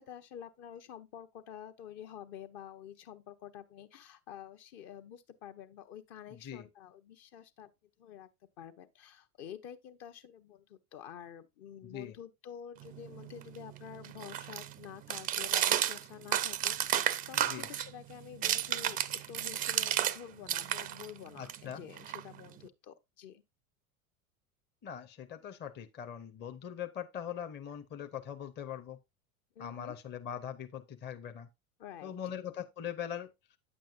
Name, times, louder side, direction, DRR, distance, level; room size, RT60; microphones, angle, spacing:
voice 1, 0.0-7.7 8.0-8.3 8.6-23.4 29.5-30.0 31.8-32.2, left 9 dB, 55° left, 1.1 m, -49 dB
voice 2, 6.3-6.7 11.9-12.1 17.3-17.7 21.4-21.8 24.8-29.0 29.6-31.5 32.0-33.6, left 9 dB, 25° left, 0.7 m, -41 dB
sound 1, 12.8-20.2 20.4-22.7, right 11 dB, 20° right, 0.4 m, -33 dB
8.9 x 7.5 x 2.5 m
hypercardioid pair, 85°, 43 cm